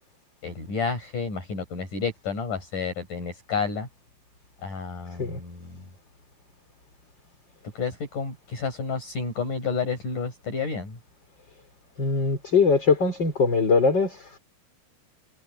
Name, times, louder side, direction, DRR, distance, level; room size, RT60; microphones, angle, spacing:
voice 1, 0.4-3.9 4.6-5.7 7.8-11.0, left 5 dB, 50° left, 7.9 m, -30 dB
voice 2, 12.0-14.4, left 4 dB, 30° left, 4.9 m, -22 dB
omnidirectional pair, 4.6 m